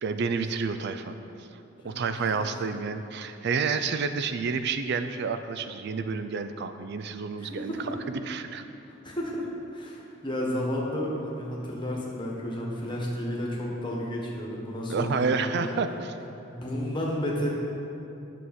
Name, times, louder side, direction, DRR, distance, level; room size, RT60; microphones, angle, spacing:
voice 1, 0.0-1.5 1.8-7.7 8.2-8.6 14.9-15.9, right 5 dB, 55° right, 9 dB, 0.4 m, -29 dB
voice 2, 7.4-7.9 9.0-9.5 9.7-15.7 16.4-17.5, equal, 25° left, -3 dB, 1.4 m, -32 dB
9.1 x 6.3 x 4.3 m, 2.9 s
head